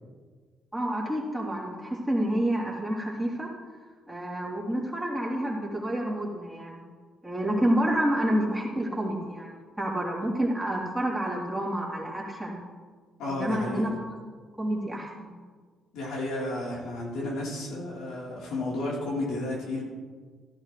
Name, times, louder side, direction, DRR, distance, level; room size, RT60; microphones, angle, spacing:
voice 1, 0.7-3.5 4.1-6.8 7.2-12.6 13.3-13.9 14.6-15.3, right 1 dB, 5° right, -5 dB, 3.8 m, -29 dB
voice 2, 13.2-13.8 15.9-19.8, left 2 dB, 85° left, -5 dB, 4.2 m, -32 dB
15.5 x 11.0 x 3.4 m, 1.5 s
cardioid pair, 90°, 0 cm